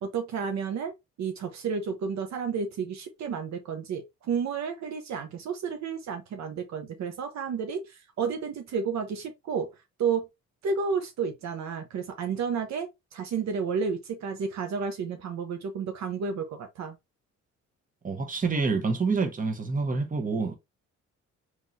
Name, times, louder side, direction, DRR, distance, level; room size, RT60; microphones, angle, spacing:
voice 1, 0.0-0.9 1.2-10.3 10.6-17.0, right 6 dB, 65° right, 0.7 m, -31 dB
voice 2, 18.0-20.6, right 4 dB, 25° right, 1.0 m, -27 dB
3.6 x 3.0 x 2.6 m
cardioid pair, 90°, 30 cm